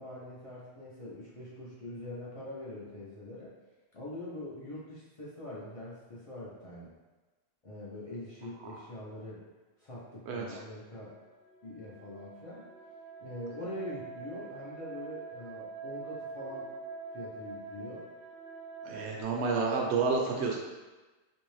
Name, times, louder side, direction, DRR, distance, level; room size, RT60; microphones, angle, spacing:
voice 1, 0.0-3.5 3.9-6.9 7.6-9.4 9.8-11.2 11.6-12.6 13.2-16.7 17.1-18.0, left 1 dB, 40° left, -7 dB, 0.6 m, -43 dB
voice 2, 10.3-10.6 18.8-20.6, right 4 dB, 75° right, -1 dB, 0.9 m, -30 dB
sound 1, 10.9-19.2, right 4 dB, 55° left, 1.0 m, -45 dB
3.1 x 2.6 x 3.1 m, 1.2 s
omnidirectional pair, 1.2 m